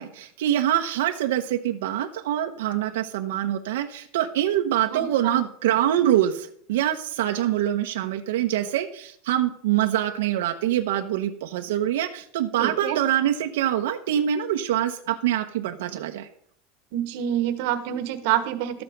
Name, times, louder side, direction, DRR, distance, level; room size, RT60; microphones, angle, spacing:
voice 1, 0.0-16.3, right 11 dB, 90° right, 4 dB, 1.0 m, -25 dB
voice 2, 4.9-5.4 12.6-13.0 16.9-18.8, right 11 dB, 55° right, 8 dB, 1.3 m, -27 dB
12.5 x 8.0 x 5.3 m, 0.64 s
supercardioid pair, 170°, 0 cm